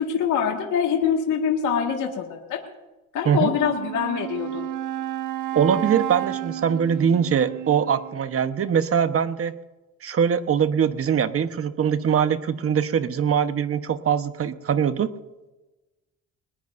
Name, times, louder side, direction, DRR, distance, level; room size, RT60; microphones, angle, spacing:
voice 1, 0.0-2.6 3.1-4.7, left 7 dB, 85° left, 1 dB, 1.9 m, -24 dB
Wind instrument woodwind instrument, 3.5-8.4, right 13 dB, 90° right, 1.2 m, -32 dB
voice 2, 5.5-9.6 10.0-15.1, right 7 dB, 50° right, 10 dB, 1.1 m, -22 dB
21.5 x 20.0 x 2.6 m, 1.1 s
cardioid pair, 90°, 30 cm